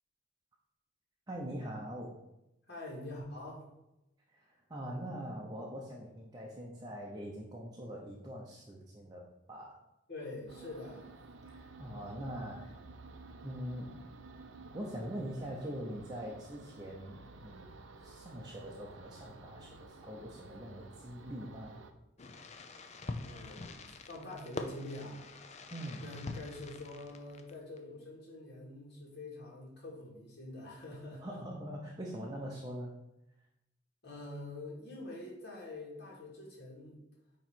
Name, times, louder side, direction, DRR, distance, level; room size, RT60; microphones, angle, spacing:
voice 1, 1.3-2.2 4.3-9.8 11.4-12.8 13.4-14.2 14.7-17.7 17.9-21.8 25.7-26.1 31.2-33.0, equal, 20° right, -2 dB, 0.7 m, -43 dB
voice 2, 2.7-3.6 10.1-11.1 23.2-25.2 26.0-31.4 34.0-37.0, left 2 dB, 55° left, -4 dB, 2.2 m, -45 dB
sound 1, 10.5-21.9, right 3 dB, 65° right, 0.6 m, -53 dB
Fireworks, 22.2-27.8, left 2 dB, 35° left, 0.5 m, -45 dB
9.2 x 3.1 x 4.5 m, 0.91 s
head